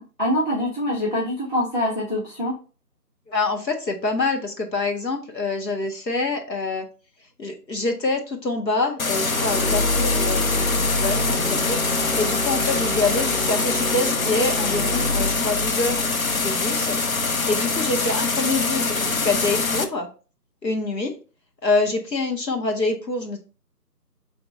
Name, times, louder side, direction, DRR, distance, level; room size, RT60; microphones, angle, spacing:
voice 1, 0.0-2.5, left 1 dB, 30° left, -5 dB, 1.1 m, -24 dB
voice 2, 3.3-6.8 7.4-16.1 16.4-20.1 20.6-21.1 21.6-23.4, left 3 dB, 80° left, 3 dB, 1.4 m, -26 dB
sound 1, 9.0-19.8, left 4 dB, 55° left, 0.6 m, -24 dB
sound 2, 9.3-17.5, left 1 dB, 45° right, 0.4 m, -28 dB
4.8 x 3.5 x 3.1 m, 0.35 s
figure-of-eight pair, 165°, 50 cm